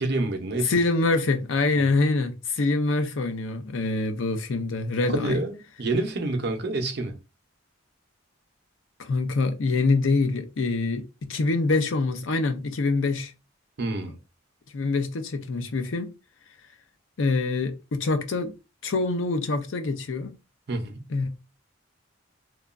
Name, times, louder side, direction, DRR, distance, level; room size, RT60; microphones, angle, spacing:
voice 1, 0.0-0.8 1.8-1.9 5.1-7.2 13.8-14.2 20.7-21.0, right 2 dB, 55° right, 0.6 m, -28 dB
voice 2, 0.7-5.4 9.0-13.3 14.7-16.1 17.2-18.5 18.8-20.4 21.1-21.3, left 3 dB, 70° left, 0.5 m, -25 dB
2.9 x 2.3 x 2.4 m
head